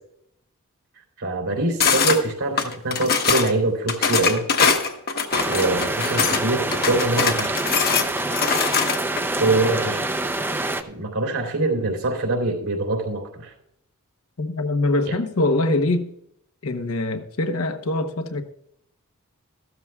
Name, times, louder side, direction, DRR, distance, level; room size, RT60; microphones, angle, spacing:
voice 1, 1.2-4.5 5.5-7.7 9.4-10.1 10.8-13.5, right 2 dB, 75° right, 3.4 m, -24 dB
sound 1, 1.8-2.2 2.6-3.5 3.9-6.4 6.7-9.2, left 6 dB, 45° left, 1.2 m, -22 dB
sound 2, 5.3-10.8, right 2 dB, 10° right, 0.6 m, -26 dB
voice 2, 14.4-16.1 16.6-18.4, left 2 dB, 70° left, 1.0 m, -23 dB
15.0 x 12.5 x 2.4 m
head